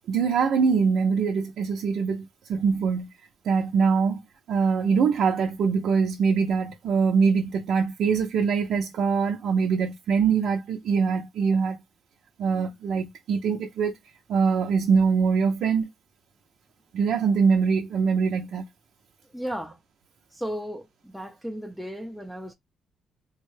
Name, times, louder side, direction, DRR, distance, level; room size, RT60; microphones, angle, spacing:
voice 1, 0.1-3.1 3.4-4.2 4.5-11.8 12.4-14.0 14.3-15.9 16.9-18.7, right 5 dB, 70° right, 0.6 m, -23 dB
voice 2, 19.3-19.8 20.3-22.5, equal, ahead, 0.6 m, -35 dB
3.7 x 2.2 x 3.1 m
cardioid pair, 90°, 0 cm